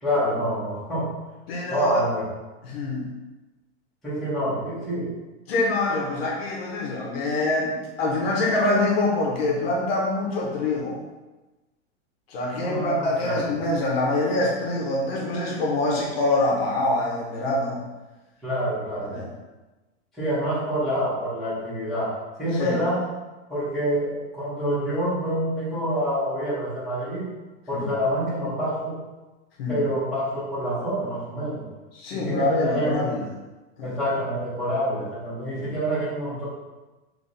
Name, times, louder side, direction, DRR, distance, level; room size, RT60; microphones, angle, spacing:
voice 1, 0.0-1.1 1.7-2.2 4.0-5.1 12.5-13.4 18.4-19.2 20.1-23.0 23.5-27.3 27.7-29.0 29.7-31.7 32.1-33.1 33.8-36.5, equal, ahead, -14 dB, 1.4 m, -27 dB
voice 2, 1.5-2.0 2.6-3.1 5.5-11.0 12.3-17.8 19.1-19.3 22.5-22.8 27.7-27.9 29.6-29.8 31.9-33.2 33.8-33.9 35.5-35.7, left 2 dB, 55° left, -3 dB, 1.0 m, -25 dB
3.3 x 3.3 x 4.0 m, 1.1 s
supercardioid pair, 175°, 36 cm